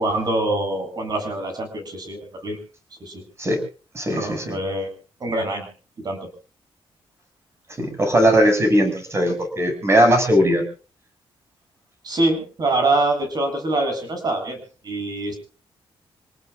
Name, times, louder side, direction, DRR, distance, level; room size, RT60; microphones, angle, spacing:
voice 1, 0.0-2.6 3.0-3.2 4.1-4.9 5.2-5.7 6.0-6.2 12.0-14.6 14.8-15.4, right 2 dB, 45° right, 5 dB, 7.6 m, -24 dB
voice 2, 3.9-4.6 7.8-10.6, equal, 25° right, 5 dB, 6.6 m, -19 dB
27.5 x 19.0 x 2.5 m, 0.37 s
wide cardioid pair, 135°, 10 cm